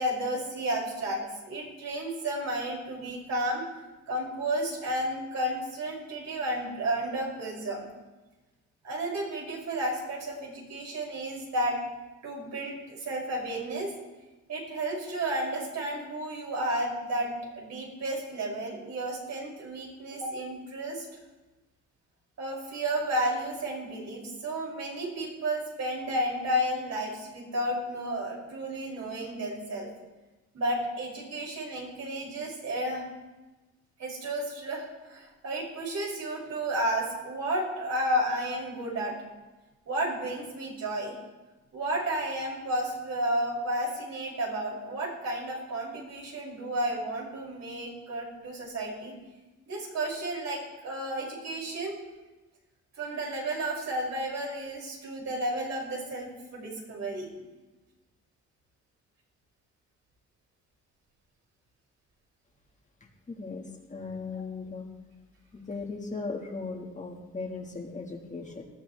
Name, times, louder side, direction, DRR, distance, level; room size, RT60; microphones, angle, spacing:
voice 1, 0.0-3.6 4.1-7.9 8.8-11.8 12.2-13.9 14.5-21.0 22.4-29.9 30.5-33.0 34.0-39.2 39.9-41.2 41.7-49.1 49.7-51.9 53.0-57.3, right 1 dB, 65° right, -3 dB, 6.0 m, -32 dB
voice 2, 63.3-64.9 65.5-68.6, left 4 dB, 25° left, 1 dB, 1.6 m, -37 dB
20.0 x 14.0 x 3.3 m, 1.1 s
cardioid pair, 140°, 29 cm